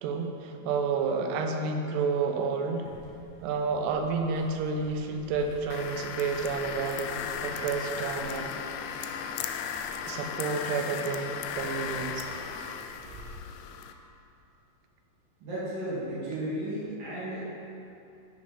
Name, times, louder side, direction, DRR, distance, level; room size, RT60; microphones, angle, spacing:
voice 1, 0.0-2.9 3.4-8.5 10.1-12.3, right 4 dB, 75° right, 4 dB, 3.0 m, -30 dB
sound 1, 2.8-13.2, right 1 dB, 90° right, 4.9 m, -51 dB
sound 2, 5.7-13.9, left 7 dB, 85° left, 3.1 m, -36 dB
voice 2, 15.4-17.5, right 1 dB, 50° right, -9 dB, 4.1 m, -34 dB
13.0 x 10.0 x 5.4 m, 2.7 s
omnidirectional pair, 5.3 m